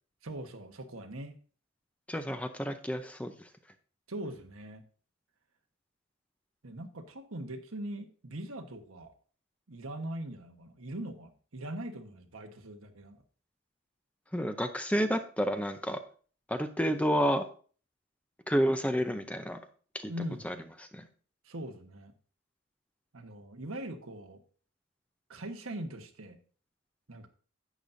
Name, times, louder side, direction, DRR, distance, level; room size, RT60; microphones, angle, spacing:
voice 1, 0.2-1.4 4.1-4.8 6.6-9.1 9.7-13.2 20.1-20.5 21.4-22.1 23.1-24.4 25.3-26.4 27.1-27.3, right 1 dB, 85° right, 5 dB, 1.3 m, -41 dB
voice 2, 2.1-3.3 14.3-16.0 16.5-17.4 18.5-19.6 19.9-20.1 20.4-21.1, equal, 5° left, 8 dB, 0.6 m, -30 dB
11.5 x 8.6 x 2.7 m, 0.42 s
head